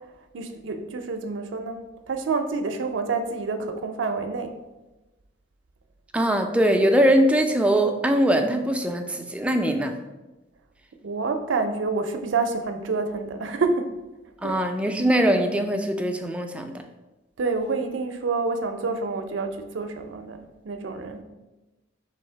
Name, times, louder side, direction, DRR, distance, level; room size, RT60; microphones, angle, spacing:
voice 1, 0.0-4.6 11.0-13.9 14.4-14.6 17.4-21.2, right 4 dB, 75° right, 6 dB, 0.5 m, -28 dB
voice 2, 6.1-9.9 14.4-16.7, right 1 dB, 5° right, 4 dB, 0.3 m, -21 dB
3.8 x 2.7 x 4.4 m, 1.1 s
head